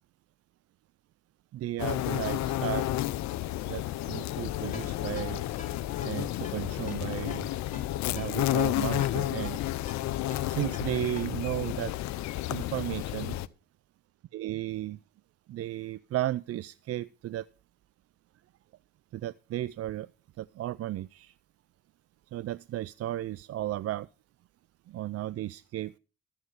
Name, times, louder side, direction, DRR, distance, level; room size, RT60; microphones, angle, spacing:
voice 1, 1.5-2.9 3.6-5.4 6.0-7.5 8.1-9.7 10.5-11.9 12.5-13.4 14.3-15.0 15.5-17.5 19.1-20.1 20.4-21.3 22.3-24.1 24.9-25.9, right 13 dB, 55° right, 0.5 m, -34 dB
sound 1, 1.8-13.5, left 14 dB, 70° left, 0.6 m, -31 dB
Ringtone, 4.7-11.6, left 4 dB, 25° left, 3.3 m, -49 dB
13.5 x 7.8 x 5.3 m
hypercardioid pair, 45°, 29 cm